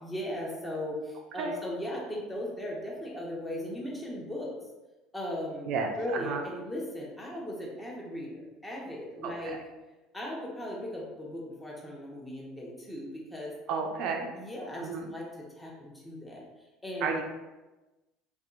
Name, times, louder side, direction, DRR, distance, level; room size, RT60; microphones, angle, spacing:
voice 1, 0.0-4.5 5.1-5.7 6.0-9.6 10.1-13.5 14.3-16.5 16.8-17.2, left 1 dB, 15° left, -3 dB, 0.8 m, -37 dB
voice 2, 13.7-14.3 14.8-15.0 17.0-17.2, right 5 dB, 65° right, 3 dB, 0.3 m, -31 dB
2.6 x 2.2 x 2.4 m, 1.1 s
hypercardioid pair, 80°, 0 cm